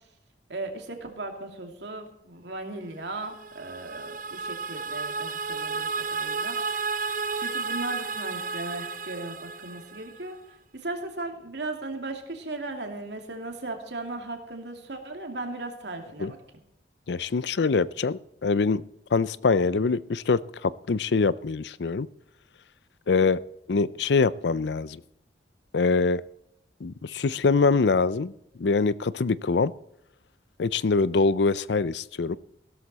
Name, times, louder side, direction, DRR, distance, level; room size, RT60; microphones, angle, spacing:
voice 1, 0.5-6.6 6.9-7.0 7.4-10.4 10.7-16.4, right 2 dB, 70° right, 4 dB, 2.6 m, -37 dB
sound 1, 3.1-10.3, right 4 dB, 50° right, 0.6 m, -32 dB
voice 2, 17.1-18.8 19.1-22.1 23.1-23.4 23.7-25.0 25.7-26.2 26.8-28.3 28.6-29.7 30.6-32.4, left 4 dB, 70° left, 18 dB, 0.5 m, -24 dB
16.0 x 13.0 x 4.2 m, 0.77 s
head